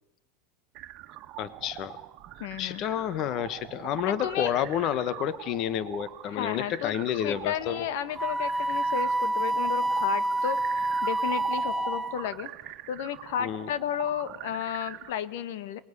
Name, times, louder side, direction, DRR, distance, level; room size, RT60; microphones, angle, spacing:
sound 1, 0.7-15.1, right 14 dB, 50° right, 1.6 m, -43 dB
voice 1, 1.4-2.0 2.6-7.9 13.4-13.7, left 10 dB, 45° left, 15 dB, 1.3 m, -30 dB
voice 2, 2.4-2.8 4.1-4.6 6.3-6.9 7.2-15.8, left 10 dB, 70° left, 14 dB, 1.6 m, -33 dB
Wind instrument woodwind instrument, 8.2-12.3, right 2 dB, 5° left, 1.2 m, -28 dB
27.5 x 20.5 x 9.8 m, 0.99 s
supercardioid pair, 135°, 0 cm